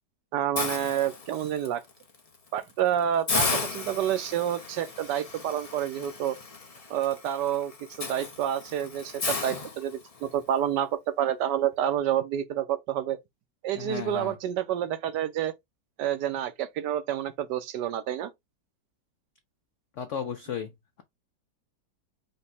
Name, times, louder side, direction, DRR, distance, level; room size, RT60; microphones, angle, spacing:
voice 1, 0.3-1.8 2.5-6.4 6.9-7.7 8.0-13.2 13.6-15.5 16.0-18.3, right 10 dB, 75° right, 1.1 m, -28 dB
Hiss, 0.6-1.7 2.1-2.4 2.7-2.8 3.3-10.3, left 4 dB, 45° left, 0.4 m, -34 dB
voice 2, 13.8-14.3 20.0-20.7, left 7 dB, 85° left, 0.6 m, -34 dB
5.2 x 2.2 x 4.1 m
omnidirectional pair, 2.0 m